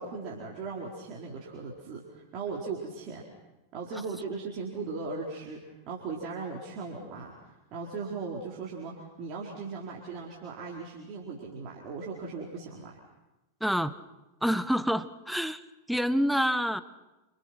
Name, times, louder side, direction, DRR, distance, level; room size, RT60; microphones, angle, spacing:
voice 1, 0.0-3.3 3.7-7.3 7.7-13.0, right 4 dB, 40° right, -3 dB, 4.5 m, -38 dB
voice 2, 13.6-13.9 14.4-15.6 15.9-16.8, equal, ahead, 14 dB, 1.1 m, -27 dB
29.0 x 26.5 x 6.0 m, 1.1 s
figure-of-eight pair, 90°, 0 cm